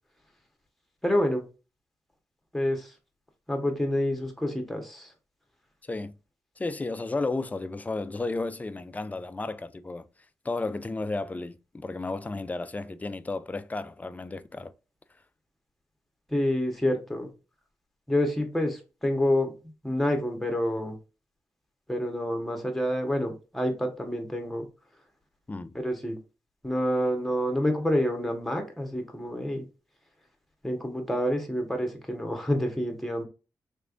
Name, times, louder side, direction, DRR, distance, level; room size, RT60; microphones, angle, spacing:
voice 1, 1.0-1.4 2.5-2.9 3.5-5.1 16.3-17.3 18.1-19.5 19.8-21.0 21.9-24.7 25.7-26.2 26.6-29.6 30.6-33.2, left 1 dB, 5° left, 1.3 m, -28 dB
voice 2, 5.8-6.1 6.6-10.1 10.4-14.7 25.5-25.8, left 3 dB, 20° left, 0.4 m, -33 dB
3.4 x 3.4 x 2.5 m
cardioid pair, 60°, 7 cm